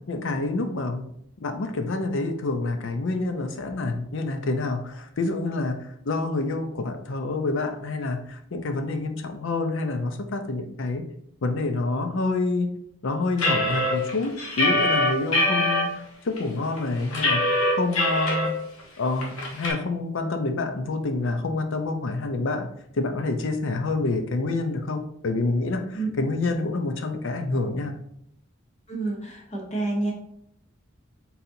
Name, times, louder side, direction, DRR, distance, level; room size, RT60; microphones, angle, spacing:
voice 1, 0.1-1.0 1.4-11.0 11.4-12.7 13.0-17.4 17.8-18.5 19.0-22.7 23.0-27.9, left 3 dB, 65° left, 7 dB, 0.6 m, -27 dB
sound 1, 13.4-15.8 16.4-16.5 16.8-18.5 18.8-18.9 19.2-19.7, left 1 dB, 85° left, 1.2 m, -23 dB
voice 2, 28.9-30.1, right 2 dB, 35° left, -1 dB, 1.1 m, -28 dB
4.1 x 4.0 x 2.7 m, 0.73 s
head